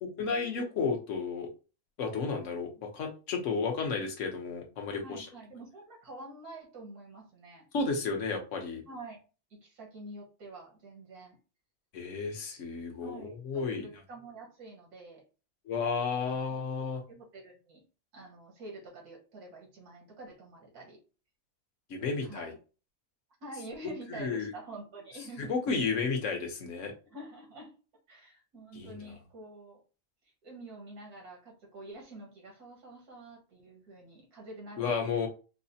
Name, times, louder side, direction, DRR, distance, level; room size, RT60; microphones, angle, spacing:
voice 1, 0.0-1.5 2.0-5.3 7.7-8.8 11.9-13.8 15.7-17.0 21.9-22.5 24.1-24.5 25.4-26.9 28.7-29.0 34.8-35.3, left 4 dB, 60° left, 2 dB, 1.1 m, -32 dB
voice 2, 5.0-7.7 8.9-9.2 9.5-11.4 13.0-15.2 16.2-16.5 17.1-17.8 18.1-21.0 22.3-22.6 23.4-25.6 27.1-27.7 28.1-29.8 30.4-35.3, right 2 dB, 85° right, -1 dB, 1.9 m, -47 dB
4.7 x 2.1 x 2.7 m, 0.33 s
omnidirectional pair, 1.6 m